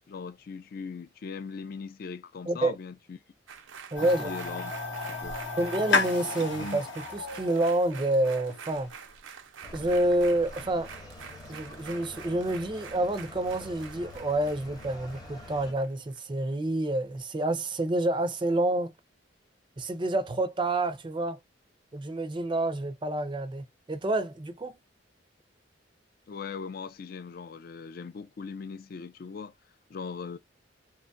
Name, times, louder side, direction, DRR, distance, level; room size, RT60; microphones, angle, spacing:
voice 1, 0.1-3.2 4.0-4.7 5.1-5.4 26.3-29.5 29.9-30.4, left 5 dB, 50° left, 0.3 m, -39 dB
sound 1, 3.5-16.2 16.5-16.6, right 6 dB, 85° right, 0.5 m, -47 dB
voice 2, 3.9-4.3 5.6-8.9 9.7-10.9 11.5-18.9 19.8-21.4 21.9-24.8, right 1 dB, 25° right, 0.4 m, -28 dB
sound 2, 4.0-8.9, left 4 dB, 70° left, 0.8 m, -32 dB
sound 3, 9.6-15.7, left 1 dB, 20° left, 0.7 m, -46 dB
2.9 x 2.3 x 2.5 m
head